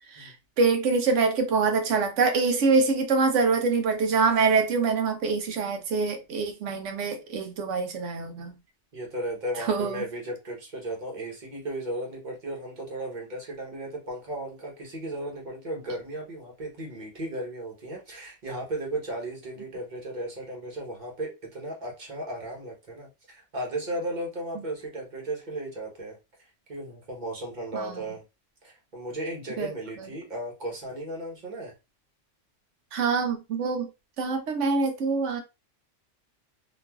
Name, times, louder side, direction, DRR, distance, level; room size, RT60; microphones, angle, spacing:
voice 1, 0.1-8.5 9.6-10.0 27.7-28.0 29.6-29.7 32.9-33.9 34.2-35.4, right 4 dB, 75° right, 1.0 m, -25 dB
voice 2, 8.9-26.2 26.7-28.2 28.6-31.7, right 1 dB, 40° right, 1.1 m, -35 dB
3.0 x 2.4 x 2.2 m
omnidirectional pair, 1.3 m